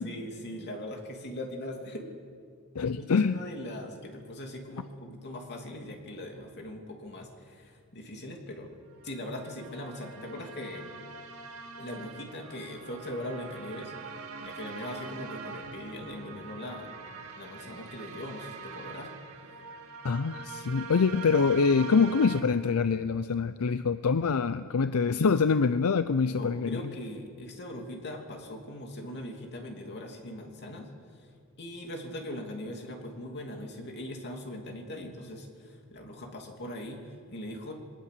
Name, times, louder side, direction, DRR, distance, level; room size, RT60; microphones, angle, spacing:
voice 1, 0.0-2.1 3.0-8.8 9.0-11.0 11.8-14.1 14.4-16.9 17.4-19.1 26.3-31.3 31.6-37.7, left 1 dB, 50° left, 2 dB, 2.9 m, -40 dB
voice 2, 2.7-3.4 20.0-26.8, left 5 dB, 80° left, 12 dB, 0.6 m, -25 dB
sound 1, 9.0-22.4, right 5 dB, 75° right, 2.0 m, -43 dB
22.5 x 19.0 x 6.8 m, 2.2 s
head